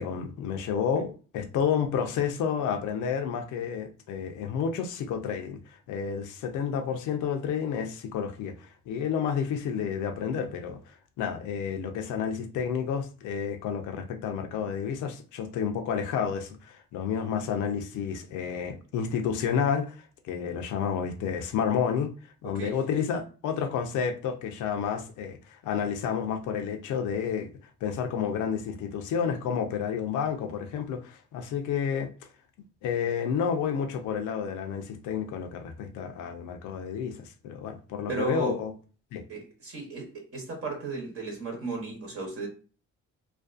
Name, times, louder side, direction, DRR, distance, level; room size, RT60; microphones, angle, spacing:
voice 1, 0.0-27.5 27.8-32.1 32.8-38.7 39.1-39.2, left 7 dB, 85° left, 0.5 m, -30 dB
voice 2, 22.4-22.8 38.1-38.6 39.3-42.5, right 3 dB, 50° right, 0.9 m, -34 dB
2.4 x 2.3 x 2.4 m
cardioid pair, 90°, 30 cm